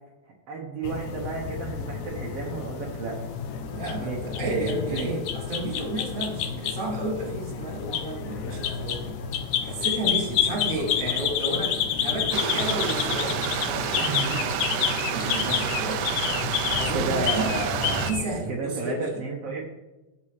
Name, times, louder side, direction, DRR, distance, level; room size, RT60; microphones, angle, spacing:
voice 1, 0.5-3.2 4.0-5.1 14.0-14.5 15.1-15.4 16.1-16.2 16.9-18.1 18.5-19.6, right 3 dB, 70° right, -2 dB, 1.5 m, -32 dB
sound 1, 0.8-18.3, left 8 dB, 75° left, 1.8 m, -29 dB
voice 2, 3.7-9.2 9.6-14.0 15.0-16.0 16.7-17.5 18.0-19.1, right 1 dB, 30° right, -1 dB, 2.1 m, -32 dB
Stream, 12.3-18.1, right 9 dB, 85° right, 1.8 m, -29 dB
15.5 x 7.5 x 3.3 m, 1.1 s
omnidirectional pair, 4.3 m